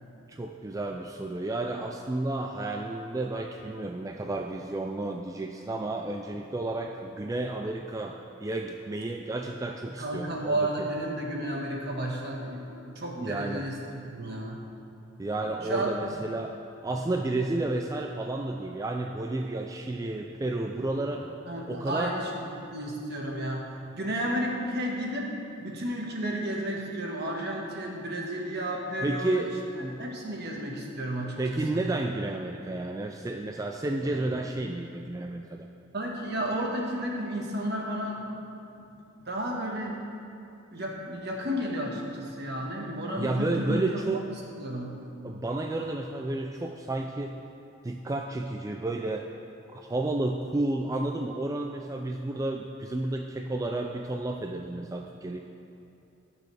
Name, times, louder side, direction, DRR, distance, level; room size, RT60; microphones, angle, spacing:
voice 1, 0.3-10.9 13.2-13.7 15.2-16.6 16.8-21.3 21.7-22.2 29.0-29.5 29.8-30.1 31.4-35.7 43.2-44.2 45.2-47.4 47.8-49.3 49.7-55.4, right 2 dB, 15° right, 2 dB, 0.3 m, -31 dB
voice 2, 10.0-14.6 15.6-16.1 21.5-22.4 22.7-25.3 25.6-29.5 30.0-31.8 35.9-38.5 38.8-38.9 39.2-39.9 40.7-43.8 44.3-45.0, right 1 dB, 55° right, -1 dB, 1.5 m, -32 dB
18.0 x 6.2 x 3.4 m, 2.6 s
head